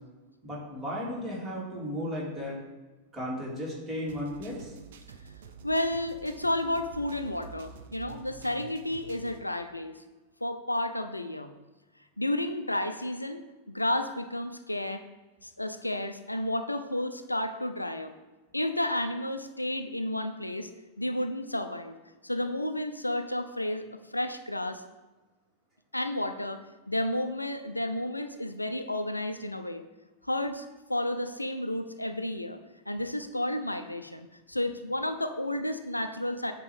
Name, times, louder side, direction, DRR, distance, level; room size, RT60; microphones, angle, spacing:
voice 1, 0.4-2.6 3.1-4.7, equal, 15° right, -5 dB, 2.5 m, -35 dB
sound 1, 4.1-9.4, right 7 dB, 60° right, 0.6 m, -48 dB
voice 2, 5.6-10.0 10.4-11.5 12.2-13.4 13.7-15.0 15.4-18.1 18.5-20.7 21.0-21.9 22.2-23.9 24.1-24.8 25.9-29.8 30.2-30.6 30.9-32.6 32.9-36.5, left 1 dB, 85° left, 8 dB, 0.4 m, -31 dB
8.5 x 3.0 x 6.2 m, 1.2 s
figure-of-eight pair, 90°, 0 cm